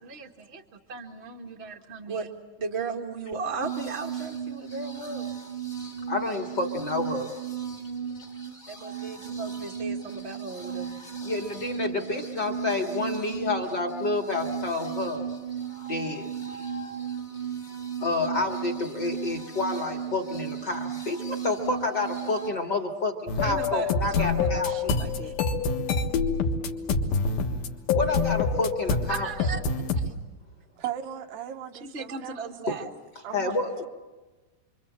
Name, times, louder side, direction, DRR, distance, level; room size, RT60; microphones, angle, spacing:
voice 1, 0.0-0.6 0.9-2.3 2.6-5.3 8.8-10.9 23.4-25.3 29.1-29.6 29.9-30.1 31.8-32.9, right 4 dB, 35° right, 1.1 m, -36 dB
sound 1, 3.6-22.5, right 7 dB, 20° left, 1.5 m, -35 dB
voice 2, 6.1-7.3 11.2-15.2 15.9-16.3 18.0-24.8 27.9-29.5 32.7-32.8 33.3-33.9, left 3 dB, 35° left, 2.1 m, -29 dB
sound 2, 23.3-30.1, left 4 dB, 85° left, 3.4 m, -26 dB
voice 3, 30.8-32.7 33.2-33.5, right 10 dB, 80° right, 3.0 m, -37 dB
29.0 x 24.5 x 7.5 m
omnidirectional pair, 4.0 m